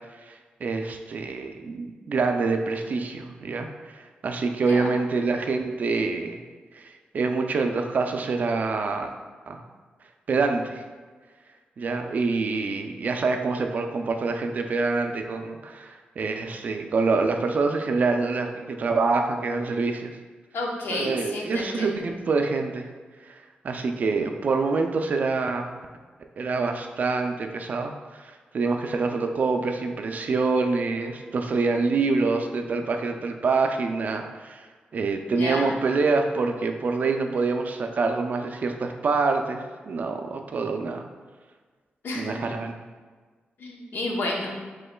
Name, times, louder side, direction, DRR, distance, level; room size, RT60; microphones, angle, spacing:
voice 1, 0.6-6.4 6.7-9.1 9.5-9.6 10.3-10.8 11.8-20.1 20.9-22.9 23.2-23.4 23.6-25.7 26.4-34.7 34.9-41.0 42.1-42.7, right 4 dB, 50° right, 5 dB, 0.3 m, -26 dB
voice 2, 20.5-22.0 35.2-35.7 42.0-42.4 43.6-44.6, left 2 dB, 70° left, -1 dB, 0.8 m, -31 dB
5.3 x 3.7 x 2.2 m, 1.4 s
wide cardioid pair, 140°, 4 cm